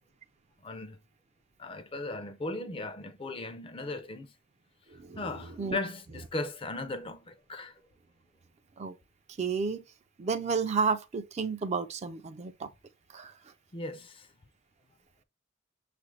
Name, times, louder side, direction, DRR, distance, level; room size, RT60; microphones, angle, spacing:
voice 1, 0.6-1.0 1.6-4.3 5.2-7.7 13.7-14.3, left 2 dB, 25° left, 0.4 m, -37 dB
voice 2, 9.4-9.8 10.2-12.7 13.1-13.3, right 5 dB, 35° right, 0.3 m, -31 dB
6.4 x 2.5 x 3.1 m
head